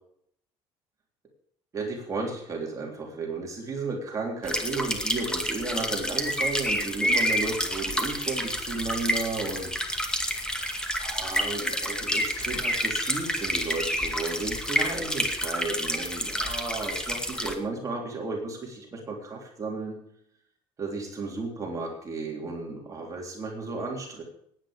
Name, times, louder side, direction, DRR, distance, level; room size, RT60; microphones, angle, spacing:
voice 1, 1.7-9.7 11.0-20.0 20.8-24.2, right 3 dB, 30° right, 0 dB, 3.6 m, -33 dB
sound 1, 4.5-17.5, equal, 5° left, 2.2 m, -29 dB
18.5 x 9.4 x 5.1 m, 0.71 s
cardioid pair, 120°, 11 cm